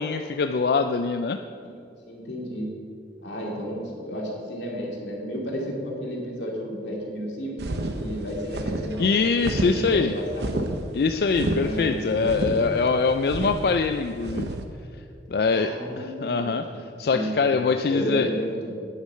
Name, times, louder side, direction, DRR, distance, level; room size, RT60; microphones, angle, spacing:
voice 1, 0.0-1.4 9.0-10.2 10.9-14.5 15.3-16.7 17.0-18.3, left 4 dB, 55° left, 7 dB, 0.3 m, -23 dB
voice 2, 2.1-2.7 3.2-9.1 9.4-10.6 11.5-12.5 15.5-17.5 17.9-18.7, equal, 90° left, -2 dB, 2.6 m, -32 dB
sound 1, 7.6-14.6, right 2 dB, 70° right, 0.8 m, -30 dB
9.6 x 8.2 x 5.6 m, 2.4 s
head